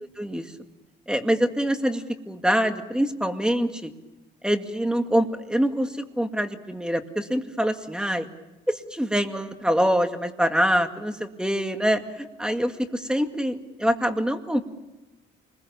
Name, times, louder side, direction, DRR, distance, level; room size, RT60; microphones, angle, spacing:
voice 1, 0.2-0.5 1.1-3.9 4.4-8.3 8.7-14.6, equal, 5° right, 6 dB, 2.1 m, -25 dB
28.0 x 21.0 x 7.1 m, 1.1 s
cardioid pair, 90°, 20 cm